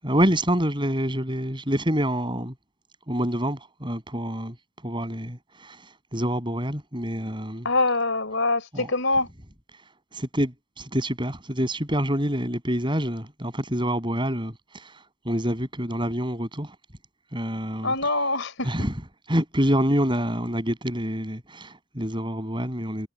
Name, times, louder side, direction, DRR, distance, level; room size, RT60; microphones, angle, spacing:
voice 1, 0.0-2.5 3.1-4.5 4.8-7.7 8.7-8.9 9.7-16.8 17.3-17.9 18.6-18.9 19.3-23.1, equal, 20° right, 7.9 m, -27 dB
voice 2, 7.6-9.3 17.8-18.7, left 2 dB, 60° left, 4.8 m, -24 dB
head